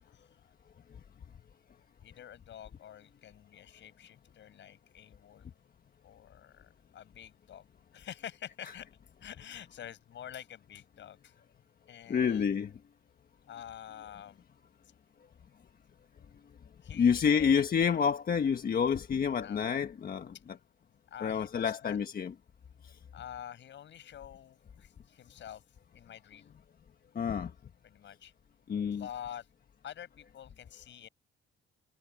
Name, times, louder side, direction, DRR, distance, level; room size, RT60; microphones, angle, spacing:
voice 1, 2.0-5.5 6.0-8.9 9.2-11.3 11.9-12.6 13.5-14.4 16.8-17.6 19.4-19.8 21.1-22.0 23.1-25.6 25.9-26.5 27.8-28.3 28.9-29.5 29.8-31.1, left 10 dB, 70° left, 7.2 m, -47 dB
voice 2, 12.1-12.7 16.9-20.3 21.2-22.3 27.1-27.5 28.7-29.1, left 7 dB, 50° left, 1.4 m, -28 dB
cardioid pair, 90°, 20 cm